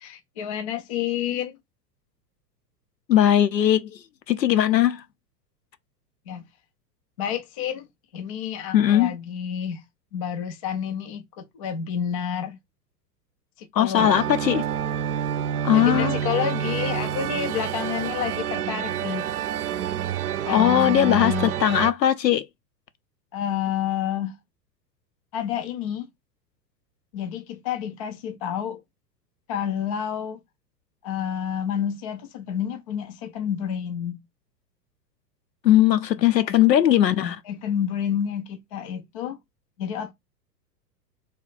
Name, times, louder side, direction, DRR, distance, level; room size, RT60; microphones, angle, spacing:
voice 1, 0.0-1.6 6.3-6.4 7.2-7.9 8.1-9.8 10.1-12.6 13.6-14.1 15.7-19.3 20.5-21.6 23.3-24.4 25.3-26.1 27.1-28.8 29.5-30.4 31.0-34.2 36.2-36.6 37.4-39.4 39.8-40.1, left 9 dB, 25° left, 0.3 m, -29 dB
voice 2, 3.1-4.0 4.3-5.0 8.7-9.1 13.8-14.6 15.6-16.2 20.5-21.3 21.6-22.5 35.6-37.4, left 11 dB, 80° left, 0.7 m, -19 dB
sound 1, 14.0-21.9, right 9 dB, 65° right, 0.6 m, -28 dB
3.2 x 2.3 x 4.0 m
figure-of-eight pair, 95°, 50 cm